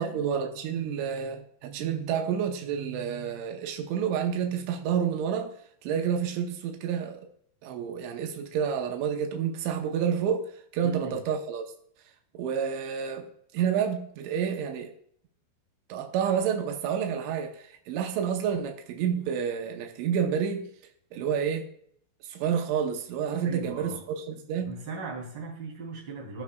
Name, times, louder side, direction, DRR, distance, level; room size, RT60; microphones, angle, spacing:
voice 1, 0.0-5.5 5.8-7.2 7.6-11.7 12.4-13.3 13.5-14.9 15.9-20.7 21.1-21.7 22.3-24.8, right 7 dB, 85° right, 3.4 m, -29 dB
voice 2, 10.8-11.2 23.4-24.0 24.6-26.4, right 3 dB, 30° right, 3.1 m, -38 dB
17.5 x 6.4 x 2.3 m
omnidirectional pair, 5.3 m